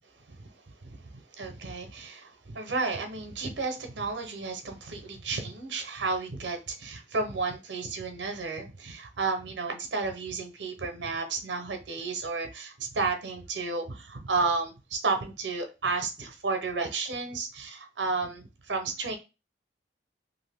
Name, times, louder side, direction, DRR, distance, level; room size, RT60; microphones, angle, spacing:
voice 1, 0.8-19.2, right 4 dB, 70° right, 6 dB, 0.6 m, -32 dB
2.6 x 2.4 x 3.4 m, 0.29 s
head